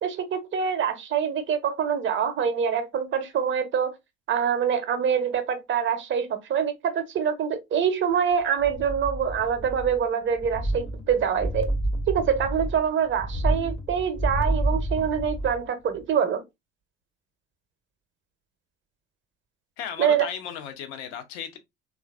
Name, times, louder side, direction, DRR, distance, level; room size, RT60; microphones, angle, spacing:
voice 1, 0.0-3.9 4.3-11.7 12.1-16.4 20.0-20.3, right 7 dB, 35° right, 0.6 m, -25 dB
sound 1, 8.6-10.1 10.3-15.7 16.0-16.1, right 1 dB, 15° left, 0.6 m, -29 dB
voice 2, 19.8-21.6, left 8 dB, 60° left, 0.8 m, -35 dB
3.1 x 2.4 x 2.3 m
hypercardioid pair, 65°, 35 cm